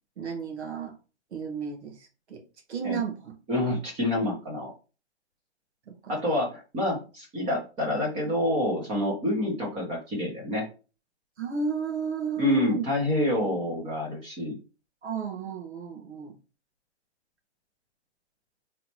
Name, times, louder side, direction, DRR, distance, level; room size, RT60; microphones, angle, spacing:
voice 1, 0.2-0.9 1.3-2.4 2.7-3.3 5.9-6.1 11.4-12.8 15.0-16.4, right 5 dB, 75° right, 1.5 m, -33 dB
voice 2, 3.5-4.7 6.1-10.7 12.4-14.6, left 1 dB, 20° right, 1.2 m, -27 dB
3.9 x 3.4 x 2.9 m
hypercardioid pair, 145°, 34 cm